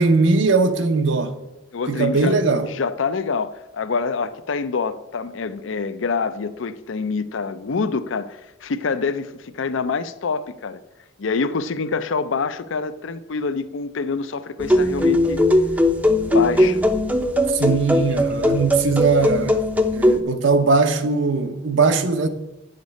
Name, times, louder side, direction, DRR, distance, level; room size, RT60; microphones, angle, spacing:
voice 1, 0.0-1.4 1.9-2.7 17.5-19.6 19.9-22.3, right 4 dB, 70° right, 0.8 m, -19 dB
voice 2, 1.7-10.8 11.2-15.4 16.3-16.8, left 4 dB, 75° left, 0.5 m, -26 dB
sound 1, 14.6-20.2, left 1 dB, 10° right, 0.5 m, -19 dB
9.6 x 6.6 x 5.2 m
head